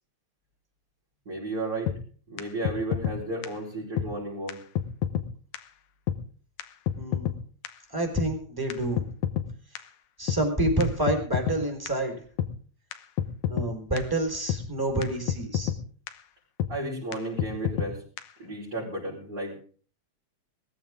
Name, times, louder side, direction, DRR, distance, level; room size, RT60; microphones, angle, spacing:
voice 1, 1.3-1.9 2.3-4.6 16.7-18.0 18.4-19.6, right 2 dB, 30° right, -6 dB, 5.5 m, -33 dB
sound 1, 1.9-2.0 2.4-2.5 2.7-3.2 3.4-3.5 4.0-4.1 4.5-4.6 4.8-5.3 5.5-5.6 6.1-6.2 6.6-6.7 6.9-7.4 7.7-7.8 8.2-8.3 8.7-9.5 9.8-9.9 10.3-10.4 10.8-10.9 11.1-11.6 11.9-12.0 12.4-12.5 12.9-13.0 13.2-13.7 14.0-14.1 14.5-14.6 15.0-15.1 15.3-15.8 16.1-16.2 16.6-16.7 17.1-17.2 17.4-17.9 18.2-18.3, left 10 dB, 85° left, 2.5 m, -28 dB
voice 2, 7.0-7.3 7.9-9.0 10.2-12.1 13.5-15.7, right 1 dB, 5° right, 2 dB, 4.3 m, -28 dB
20.5 x 14.5 x 3.7 m, 0.42 s
omnidirectional pair, 3.4 m